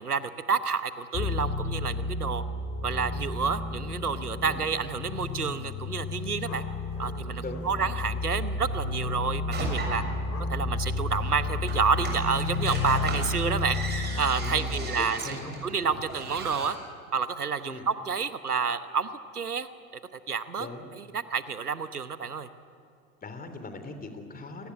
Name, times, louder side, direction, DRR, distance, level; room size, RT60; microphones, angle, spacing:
voice 1, 0.0-2.4 2.8-6.6 7.0-10.0 10.5-13.8 14.2-16.8 17.1-19.7 20.1-20.7 20.9-22.5, right 5 dB, 90° right, 13 dB, 1.1 m, -29 dB
sound 1, 1.1-14.7, left 3 dB, 35° left, 2.3 m, -32 dB
sound 2, 5.5-5.7 6.0-13.8, left 4 dB, 75° left, 3.4 m, -52 dB
voice 2, 7.4-7.7 14.4-15.6 17.6-17.8 20.6-20.9 23.2-24.7, left 3 dB, 20° left, 8 dB, 3.4 m, -40 dB
sound 3, 9.5-16.7, right 2 dB, 20° right, 6.9 m, -37 dB
28.5 x 19.0 x 9.6 m, 2.5 s
figure-of-eight pair, 85°, 44 cm